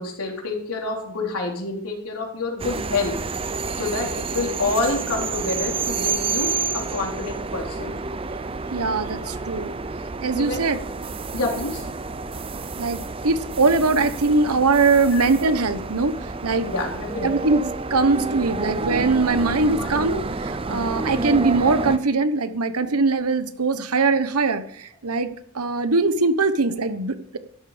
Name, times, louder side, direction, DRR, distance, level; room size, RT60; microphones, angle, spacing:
voice 1, 0.0-3.1 3.8-6.5 6.7-8.0 9.2-9.4 10.3-10.6 11.3-11.9 15.1-15.2 16.6-17.5 19.8-19.9, left 3 dB, 80° left, 0 dB, 4.1 m, -28 dB
sound 1, 2.6-22.0, right 4 dB, 25° right, 0.5 m, -29 dB
voice 2, 8.7-9.7 10.2-10.8 12.8-16.1 16.4-16.7 17.2-17.6 17.9-27.4, right 3 dB, 85° right, 11 dB, 1.1 m, -21 dB
13.0 x 12.5 x 5.1 m, 0.66 s
head